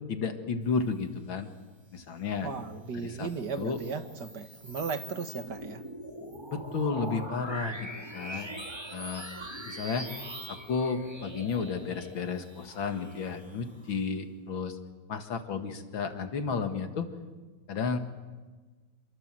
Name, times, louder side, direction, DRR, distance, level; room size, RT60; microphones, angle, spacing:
voice 1, 0.1-1.5 1.9-2.5 2.9-3.3 3.5-3.8 6.5-8.5 8.9-9.2 9.7-10.1 10.5-14.8 15.1-17.1 17.7-18.0, left 5 dB, 85° left, 7 dB, 2.6 m, -32 dB
voice 2, 2.4-5.8 8.3-8.5, right 5 dB, 60° right, 8 dB, 2.1 m, -36 dB
sound 1, 3.0-13.9, right 1 dB, 15° right, 2.1 m, -42 dB
27.0 x 23.5 x 7.6 m, 1.4 s
omnidirectional pair, 2.1 m